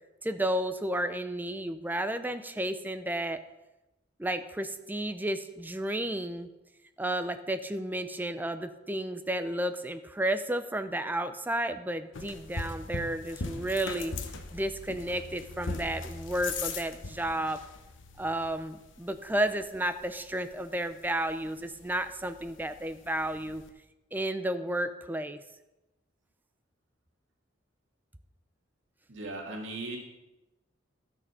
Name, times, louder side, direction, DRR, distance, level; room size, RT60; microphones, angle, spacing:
voice 1, 0.2-3.4 4.2-6.5 7.0-14.2 14.5-17.6 18.2-23.6 24.1-25.4, right 1 dB, 10° right, 10 dB, 0.5 m, -32 dB
sound 1, 12.1-23.7, left 3 dB, 75° left, 1.0 m, -41 dB
voice 2, 29.1-30.0, right 2 dB, 75° right, 1 dB, 1.9 m, -37 dB
12.5 x 6.7 x 5.5 m, 1.0 s
head